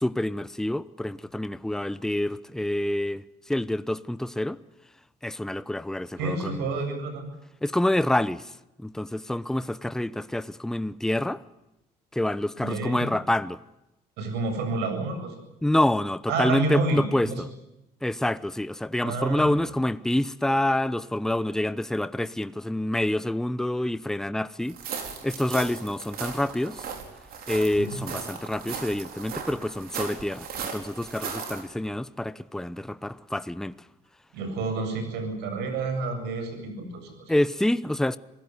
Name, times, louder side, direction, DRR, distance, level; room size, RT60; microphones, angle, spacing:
voice 1, 0.0-4.6 5.2-6.7 7.6-8.5 8.8-11.4 12.1-13.6 15.6-17.5 18.0-26.9 27.5-33.7 37.3-38.2, left 1 dB, 5° left, 0.8 m, -27 dB
voice 2, 6.2-7.3 12.6-13.1 14.2-15.4 16.3-17.4 19.0-19.6 27.8-28.0 34.3-37.3, right 3 dB, 85° right, 7.8 m, -29 dB
sound 1, 24.7-31.6, right 6 dB, 65° right, 5.1 m, -37 dB
26.0 x 17.0 x 9.6 m
cardioid pair, 110°, 17 cm